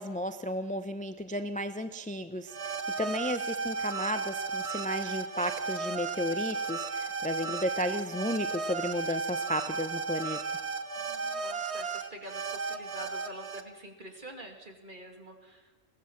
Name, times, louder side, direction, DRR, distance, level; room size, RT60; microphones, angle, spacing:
voice 1, 0.0-10.4, equal, 10° left, 9 dB, 0.5 m, -33 dB
sound 1, 2.5-13.6, right 4 dB, 60° right, 1.4 m, -34 dB
voice 2, 10.9-15.8, equal, 40° right, 3 dB, 2.7 m, -46 dB
22.0 x 17.0 x 7.2 m, 1.2 s
omnidirectional pair, 1.3 m